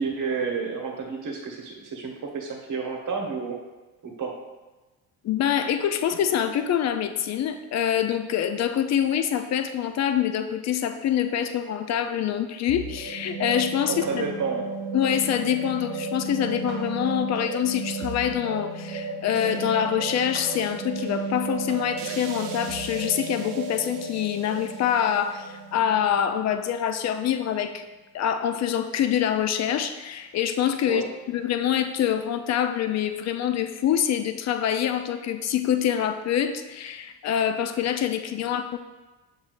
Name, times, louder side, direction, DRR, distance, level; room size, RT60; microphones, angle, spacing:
voice 1, 0.0-3.6 4.0-4.4 13.9-14.7 30.9-31.1, right 5 dB, 45° right, 2 dB, 1.1 m, -30 dB
voice 2, 5.2-14.2 14.9-27.8 28.1-38.8, left 9 dB, 40° left, 8 dB, 0.5 m, -25 dB
sound 1, 12.7-27.1, right 4 dB, 70° right, 0.7 m, -34 dB
6.9 x 2.7 x 2.5 m, 1.2 s
hypercardioid pair, 60°, 44 cm